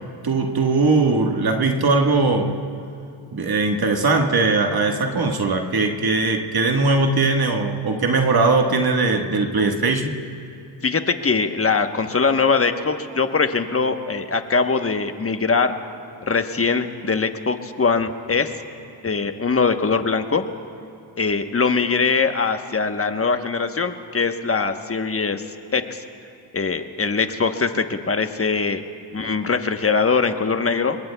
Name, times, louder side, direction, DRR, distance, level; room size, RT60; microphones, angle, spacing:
voice 1, 0.2-2.6 3.3-10.1, right 3 dB, 45° right, 3 dB, 1.6 m, -20 dB
voice 2, 10.8-15.7 16.2-18.5 19.0-20.5 21.2-25.4 25.7-26.0 26.5-28.8 29.1-31.0, left 4 dB, 30° left, 7 dB, 1.1 m, -22 dB
27.0 x 21.5 x 2.3 m, 2.5 s
cardioid pair, 65°, 49 cm